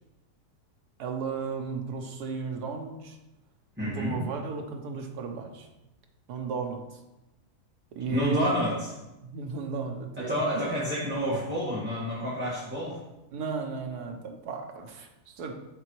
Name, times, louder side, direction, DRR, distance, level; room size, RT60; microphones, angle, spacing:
voice 1, 1.0-3.2 3.8-5.7 6.3-7.0 7.9-8.5 9.2-10.6 13.3-15.5, right 5 dB, 70° right, 4 dB, 1.4 m, -34 dB
voice 2, 3.8-4.2 8.1-8.9 10.2-13.0, equal, 5° right, -10 dB, 1.6 m, -29 dB
11.0 x 3.9 x 3.1 m, 0.97 s
omnidirectional pair, 1.7 m